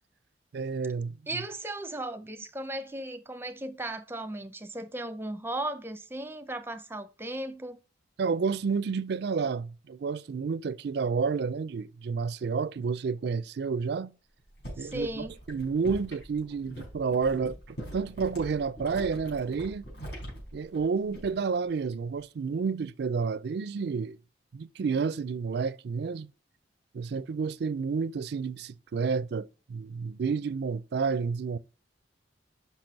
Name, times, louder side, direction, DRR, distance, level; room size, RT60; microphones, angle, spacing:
voice 1, 0.5-1.1 8.2-14.1 14.8-19.8 20.5-24.2 24.5-26.3 26.9-31.6, right 5 dB, 60° right, 0.4 m, -30 dB
voice 2, 1.3-7.8 14.8-15.3, right 1 dB, 15° right, 0.6 m, -36 dB
sound 1, 14.4-21.5 21.8-22.2, equal, 70° left, 4.6 m, -43 dB
6.0 x 5.8 x 5.1 m
head